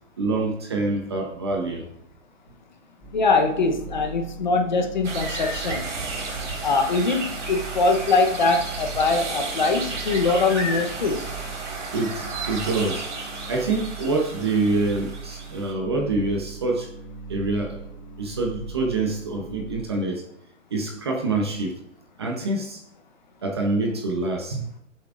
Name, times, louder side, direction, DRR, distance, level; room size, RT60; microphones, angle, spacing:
voice 1, 0.2-1.8 11.9-13.0 13.5-16.9 17.3-17.8 18.2-20.2 20.7-21.8 22.2-22.8 23.4-24.8, right 3 dB, 20° right, 1 dB, 0.8 m, -26 dB
sound 1, 3.0-19.8, right 4 dB, 15° left, 2.1 m, -40 dB
voice 2, 3.1-5.9 6.6-11.3, left 3 dB, 35° left, 4 dB, 0.9 m, -22 dB
sound 2, 5.0-15.7, right 3 dB, 65° right, 3.9 m, -33 dB
21.5 x 7.4 x 2.5 m, 0.76 s
hypercardioid pair, 175°, 38 cm